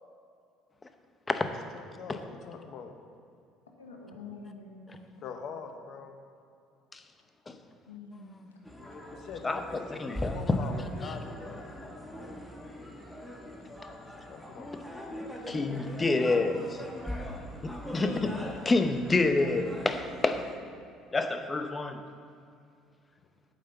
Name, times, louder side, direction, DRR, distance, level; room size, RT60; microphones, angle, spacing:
voice 1, 1.7-2.9 5.2-6.2 9.1-11.6 14.0-14.7, left 5 dB, 55° left, 1.0 m, -43 dB
voice 2, 3.8-5.1 7.9-8.9 15.5-15.6 18.0-18.2, left 3 dB, 85° left, 1.2 m, -46 dB
sound 1, 8.6-20.6, equal, 10° left, 1.5 m, -42 dB
voice 3, 9.4-10.7 11.0-11.1 15.5-16.8 17.6-18.3 18.6-20.5 21.1-22.0, left 3 dB, 25° left, 0.8 m, -28 dB
8.4 x 5.6 x 6.9 m
hypercardioid pair, 60°, 0 cm